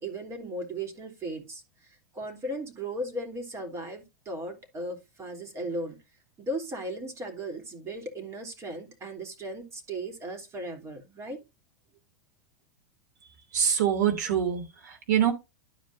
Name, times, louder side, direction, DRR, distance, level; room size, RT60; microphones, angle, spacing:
voice 1, 0.0-6.0 6.4-11.4, right 1 dB, 30° right, 3.0 m, -37 dB
voice 2, 13.5-15.3, right 9 dB, 70° right, 2.7 m, -25 dB
12.5 x 5.1 x 2.6 m
hypercardioid pair, 105°, 10 cm